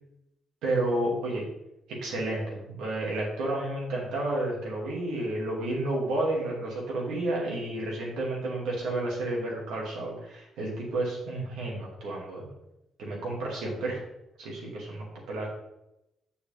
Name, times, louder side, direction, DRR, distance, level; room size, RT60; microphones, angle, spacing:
voice 1, 0.6-1.5 1.9-12.5 13.0-14.0 14.4-15.5, right 2 dB, 85° right, -3 dB, 2.5 m, -31 dB
6.9 x 6.8 x 3.5 m, 0.88 s
cardioid pair, 90°, 0 cm